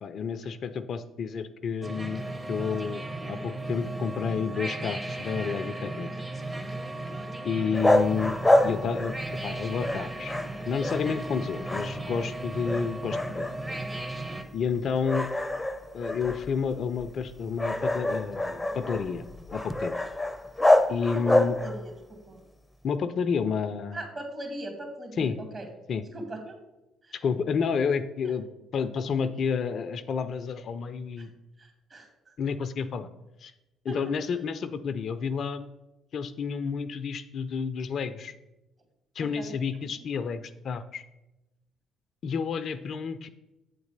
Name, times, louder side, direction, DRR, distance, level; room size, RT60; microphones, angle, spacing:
voice 1, 0.0-6.1 7.4-8.4 8.6-9.1 9.4-10.4 10.7-13.5 14.5-15.3 15.9-19.2 19.5-20.0 20.9-21.6 22.8-24.0 25.2-25.4 25.9-26.0 27.1-28.5 28.7-31.3 32.4-33.1 33.4-33.5 33.8-35.7 36.1-38.3 39.2-41.0 42.2-43.3, left 6 dB, 55° left, 12 dB, 0.4 m, -30 dB
sound 1, 1.8-14.4, right 2 dB, 20° right, 1.0 m, -36 dB
sound 2, 7.7-9.5 9.8-11.4 11.6-12.3 12.7-13.9 14.3-14.5 15.0-21.9, left 1 dB, 10° left, 0.6 m, -27 dB
voice 2, 21.1-21.9 22.3-22.4 23.9-25.6 26.1-26.4 27.0-27.1 31.2-31.3 31.6-32.1 33.9-34.0 39.2-39.6, right 1 dB, 40° right, 3 dB, 2.3 m, -39 dB
8.0 x 4.0 x 5.2 m, 0.97 s
hypercardioid pair, 50°, 0 cm